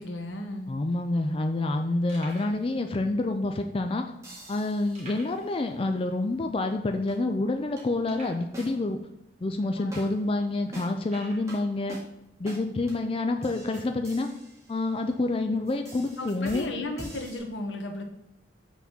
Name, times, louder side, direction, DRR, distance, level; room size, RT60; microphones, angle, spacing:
voice 1, 0.0-0.7 9.7-9.9 16.2-18.0, left 2 dB, 85° left, 4 dB, 1.1 m, -35 dB
voice 2, 0.7-4.1 4.5-9.0 9.4-12.0 12.4-14.3 14.7-16.7, left 2 dB, 30° left, 6 dB, 0.4 m, -28 dB
sound 1, 2.1-2.6 3.4-3.5 4.9-5.5 5.8-5.9 6.4-6.5 7.0-7.1 8.1-8.5 9.3-9.4 10.0-10.1 11.0-11.5 13.6-14.1 14.9-15.0 16.3-16.8, right 2 dB, 40° right, 2.2 m, -48 dB
sound 2, 2.3-2.6 4.2-5.5 7.1-7.2 7.8-7.9 8.5-9.1 9.9-10.3 10.7-11.1 11.5-11.6 11.9-12.1 12.5-12.6 12.9-13.0 13.4-15.3 15.6-17.4, right 1 dB, 15° right, 1.7 m, -46 dB
5.8 x 4.0 x 6.1 m, 0.85 s
head